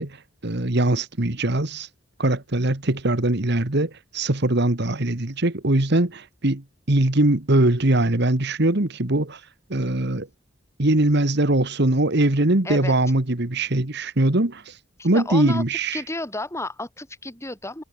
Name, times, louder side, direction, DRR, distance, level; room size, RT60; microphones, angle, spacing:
voice 1, 0.0-1.9 2.2-9.4 9.7-10.3 10.8-14.8 15.0-16.0, right 1 dB, 60° right, 1.9 m, -21 dB
voice 2, 15.0-15.6 15.9-17.8, left 2 dB, 15° left, 5.9 m, -32 dB
head